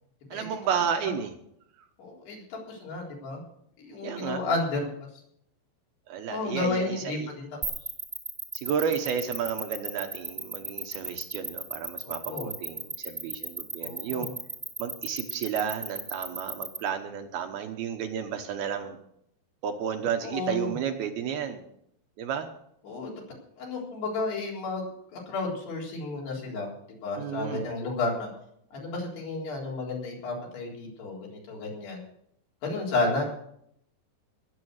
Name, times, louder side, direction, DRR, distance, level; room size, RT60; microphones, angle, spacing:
voice 1, 0.3-1.3 4.0-4.4 6.1-7.3 8.5-14.3 14.8-19.0 19.6-21.6 22.2-22.5 27.2-27.7, right 7 dB, 70° right, 5 dB, 2.7 m, -32 dB
voice 2, 2.0-3.4 3.8-4.9 6.3-7.5 12.0-12.5 13.8-14.3 20.2-20.7 22.8-23.2 23.6-24.8 25.1-28.3 28.7-31.2 31.5-32.0 32.6-33.2, left 3 dB, 70° left, -2 dB, 6.0 m, -32 dB
sound 1, 7.6-16.8, right 3 dB, ahead, 1.2 m, -35 dB
19.5 x 8.3 x 6.4 m, 0.71 s
omnidirectional pair, 5.0 m